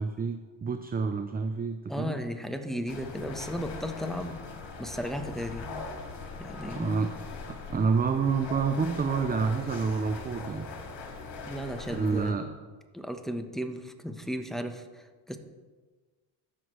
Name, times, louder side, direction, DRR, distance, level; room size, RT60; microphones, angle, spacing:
voice 1, 0.0-2.2 6.8-7.1 7.5-10.7 11.9-12.5, right 5 dB, 20° right, 8 dB, 0.5 m, -28 dB
voice 2, 1.9-4.4 4.8-5.9 6.4-6.9 11.5-12.4 12.9-15.4, equal, ahead, 6 dB, 1.0 m, -35 dB
sound 1, 2.9-12.3, left 4 dB, 60° left, 2.0 m, -41 dB
14.5 x 6.2 x 3.1 m, 1.4 s
supercardioid pair, 75°, 46 cm